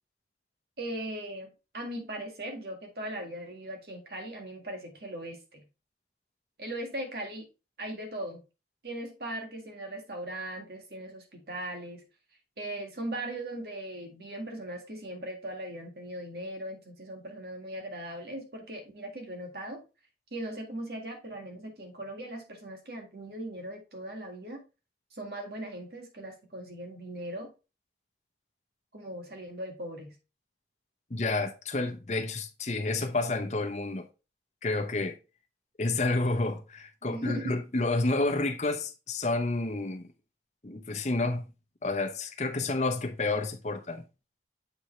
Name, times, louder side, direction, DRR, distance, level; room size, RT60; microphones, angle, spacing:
voice 1, 0.8-5.6 6.6-7.5 7.8-8.4 8.8-12.0 12.6-19.8 20.3-24.6 25.1-27.5 28.9-30.2 37.0-37.6, right 1 dB, 60° right, 1.8 m, -39 dB
voice 2, 31.1-34.1 34.6-35.2 35.8-40.1 40.6-41.6 41.8-44.0, left 2 dB, 40° left, 0.8 m, -30 dB
7.8 x 4.8 x 3.1 m
head